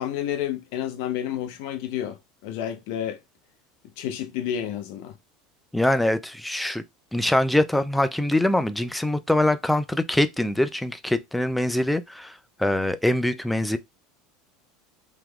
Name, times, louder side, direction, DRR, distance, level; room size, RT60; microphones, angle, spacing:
voice 1, 0.0-3.2 4.0-5.1, left 10 dB, 70° left, 0.7 m, -30 dB
voice 2, 5.7-6.8 7.1-12.3 12.6-13.8, left 1 dB, 5° left, 0.3 m, -23 dB
3.5 x 2.9 x 2.3 m
supercardioid pair, 125°, 0 cm